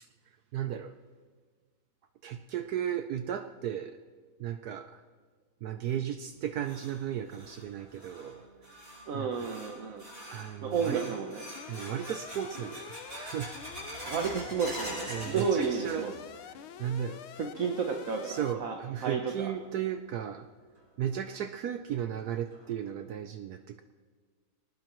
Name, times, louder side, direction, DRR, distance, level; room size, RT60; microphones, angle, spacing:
voice 1, 0.5-1.0 2.2-4.0 4.4-5.0 5.6-8.4 9.1-9.6 10.3-11.1 11.7-13.7 15.1-16.1 16.8-17.2 18.2-20.5 21.0-23.8, right 10 dB, 80° right, 8 dB, 0.8 m, -35 dB
sound 1, 6.2-16.4 16.6-17.3 17.6-17.7 18.5-18.6 20.2-20.3 20.8-20.9 21.3-21.4 21.9-22.0 22.5-22.9, equal, 30° right, 6.7 m, -44 dB
voice 2, 9.1-10.0 10.6-11.4 14.1-16.1 17.4-19.5, right 5 dB, 55° right, 3 dB, 1.1 m, -32 dB
Alarm, 11.6-18.5, left 9 dB, 80° left, 1.6 m, -47 dB
24.5 x 19.0 x 3.0 m, 1.5 s
omnidirectional pair, 2.3 m